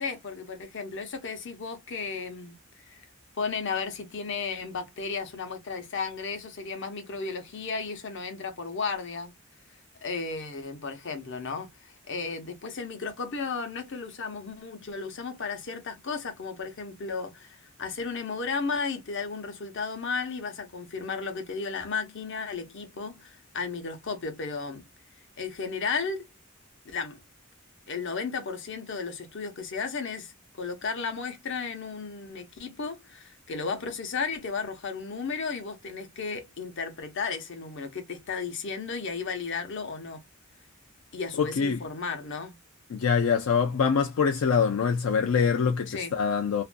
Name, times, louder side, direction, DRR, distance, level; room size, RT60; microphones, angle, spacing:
voice 1, 0.0-2.6 2.9-3.0 3.4-9.3 10.0-24.8 25.4-26.2 26.8-27.2 27.9-40.2 41.1-42.6 45.9-46.1, left 4 dB, 60° left, 0.8 m, -34 dB
voice 2, 41.4-41.8 42.9-46.6, left 6 dB, 85° left, 0.4 m, -24 dB
2.5 x 2.2 x 2.4 m
head